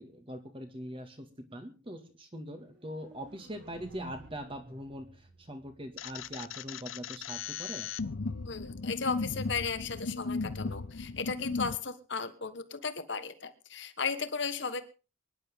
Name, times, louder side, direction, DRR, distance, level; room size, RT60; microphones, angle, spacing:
voice 1, 0.0-7.9, equal, 25° right, 7 dB, 2.1 m, -42 dB
sound 1, 2.7-6.7, right 1 dB, 55° right, 4.3 m, -53 dB
sound 2, 6.0-11.8, left 4 dB, 70° left, 0.7 m, -36 dB
voice 2, 8.4-14.8, left 5 dB, 55° left, 11 dB, 1.4 m, -35 dB
23.5 x 11.0 x 3.7 m, 0.34 s
head